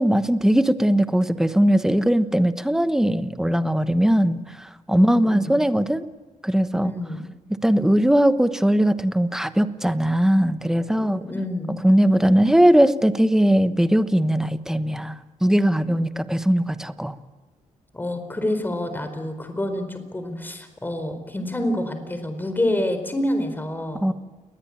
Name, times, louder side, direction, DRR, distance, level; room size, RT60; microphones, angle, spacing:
voice 1, 0.0-6.0 6.4-6.9 7.6-11.3 11.8-17.2 24.0-24.1, equal, 5° right, 11 dB, 1.1 m, -20 dB
voice 2, 4.9-5.6 6.8-7.2 11.0-11.7 15.8-16.2 17.9-24.0, left 1 dB, 15° left, 8 dB, 4.4 m, -28 dB
29.5 x 21.0 x 8.8 m, 1.2 s
wide cardioid pair, 130°, 13 cm